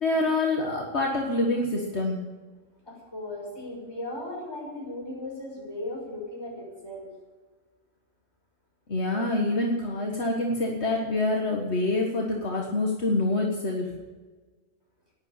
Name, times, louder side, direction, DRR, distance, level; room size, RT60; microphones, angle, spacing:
voice 1, 0.0-2.2 8.9-13.9, left 2 dB, 60° left, 0 dB, 1.8 m, -26 dB
voice 2, 2.8-7.1, left 1 dB, 20° left, -4 dB, 6.1 m, -37 dB
11.5 x 10.5 x 8.9 m, 1.4 s
omnidirectional pair, 1.2 m